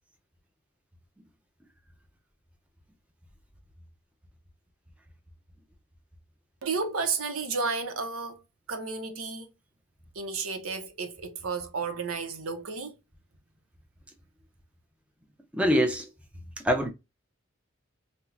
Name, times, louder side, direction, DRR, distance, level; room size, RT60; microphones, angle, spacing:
voice 1, 6.6-8.4 8.7-9.5 10.2-13.0, right 4 dB, 85° right, 0.7 m, -32 dB
voice 2, 15.5-16.1 16.6-16.9, equal, 5° right, 0.5 m, -23 dB
4.3 x 2.1 x 2.3 m
head